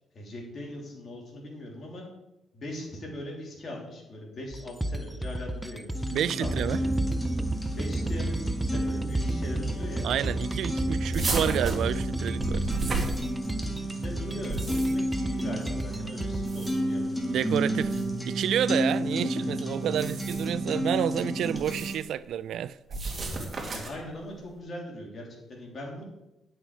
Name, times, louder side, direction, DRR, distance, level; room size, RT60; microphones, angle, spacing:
voice 1, 0.1-2.0 2.5-7.0 7.7-10.1 13.6-17.4 23.7-26.0, left 1 dB, 45° left, 3.2 m, -40 dB
sound 1, 4.5-16.5, right 1 dB, 5° right, 0.6 m, -32 dB
sound 2, 5.9-21.9, right 1 dB, 10° left, 1.8 m, -32 dB
voice 2, 6.1-6.8 10.0-12.7 17.3-23.0, right 10 dB, 75° right, 0.3 m, -29 dB
sound 3, 11.1-13.8 14.3-15.2 16.3-17.0 17.8-18.1 19.8-20.6 21.6-22.1 22.9-24.1, right 3 dB, 35° right, 2.0 m, -33 dB
10.0 x 6.3 x 4.8 m
cardioid pair, 90°, 0 cm